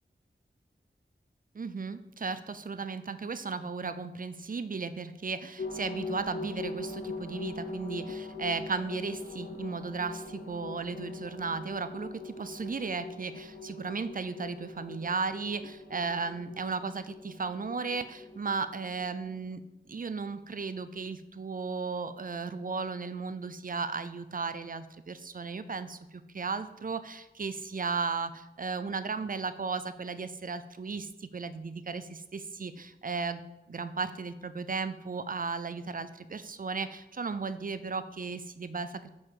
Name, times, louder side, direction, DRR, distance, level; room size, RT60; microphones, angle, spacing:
voice 1, 1.5-19.6 19.9-33.4 33.7-39.1, right 4 dB, 45° right, 12 dB, 0.4 m, -35 dB
sound 1, 5.6-19.4, left 3 dB, 55° left, 1.0 m, -42 dB
5.4 x 5.1 x 4.7 m, 0.95 s
wide cardioid pair, 55°, 20 cm